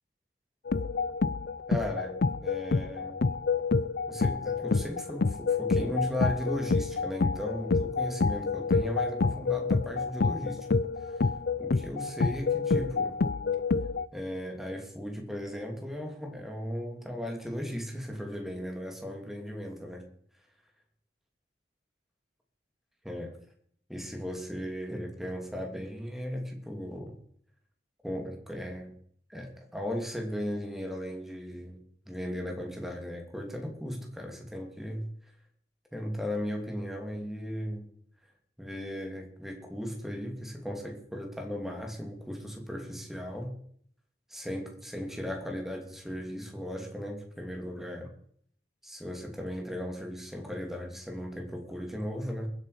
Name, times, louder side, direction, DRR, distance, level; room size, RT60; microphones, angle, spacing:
sound 1, 0.7-14.1, left 4 dB, 60° left, 0.5 m, -28 dB
voice 1, 1.7-3.2 4.1-10.7 11.6-13.2 14.1-20.1 23.0-23.4 23.9-27.2 28.0-28.9 29.3-31.8 32.1-35.0 35.9-37.9 38.6-43.5 44.3-48.1 48.8-52.5, equal, ahead, 2 dB, 2.7 m, -36 dB
22.5 x 8.3 x 5.1 m, 0.62 s
head